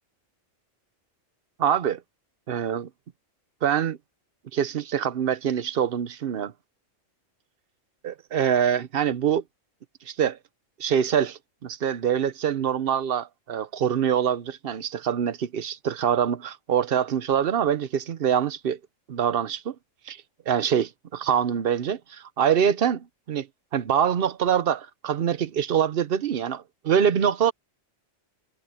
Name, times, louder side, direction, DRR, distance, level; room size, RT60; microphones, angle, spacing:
voice 1, 1.6-2.0 2.5-2.9 3.6-4.0 4.5-6.5 8.0-9.4 10.1-10.4 10.8-18.8 19.1-19.7 20.1-20.2 20.5-23.5 23.7-27.5, right 8 dB, 55° right, 0.9 m, -24 dB
omnidirectional pair, 1.3 m